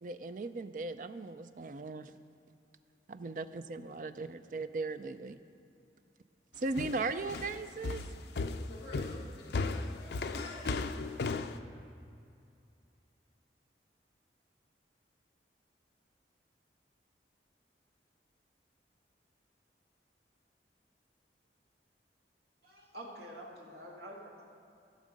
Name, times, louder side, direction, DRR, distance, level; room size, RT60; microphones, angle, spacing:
voice 1, 0.0-2.1 3.1-5.4 6.6-8.0, right 3 dB, 45° right, 11 dB, 0.4 m, -38 dB
sound 1, 6.8-11.6, left 3 dB, 70° left, 0.5 m, -35 dB
voice 2, 8.7-10.7, left 1 dB, 35° left, -5 dB, 2.4 m, -49 dB
voice 3, 22.6-24.5, equal, 65° right, -2 dB, 2.2 m, -48 dB
15.0 x 6.4 x 5.2 m, 2.5 s
head